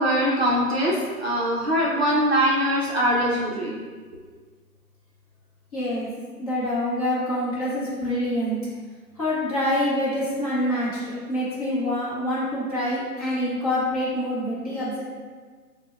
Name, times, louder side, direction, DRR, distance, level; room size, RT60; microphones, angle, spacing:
voice 1, 0.0-3.8, equal, 40° right, -5 dB, 0.6 m, -22 dB
voice 2, 5.7-6.1 6.4-8.6 9.2-15.0, left 1 dB, 25° left, -10 dB, 0.7 m, -26 dB
5.9 x 2.2 x 2.3 m, 1.5 s
figure-of-eight pair, 140°, 49 cm